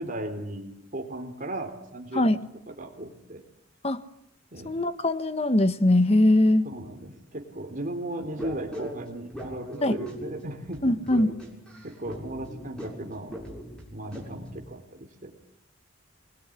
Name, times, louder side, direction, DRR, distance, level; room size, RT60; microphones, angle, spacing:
voice 1, 0.0-2.3 2.7-3.4 4.5-4.7 6.6-10.9 11.8-13.3 13.9-15.3, right 1 dB, 40° right, 3 dB, 3.7 m, -36 dB
voice 2, 4.6-6.6 9.8-9.9 10.8-11.3, left 1 dB, 30° left, 12 dB, 1.2 m, -21 dB
sound 1, 8.4-14.6, equal, 5° left, 6.9 m, -40 dB
26.5 x 21.5 x 10.0 m, 0.80 s
head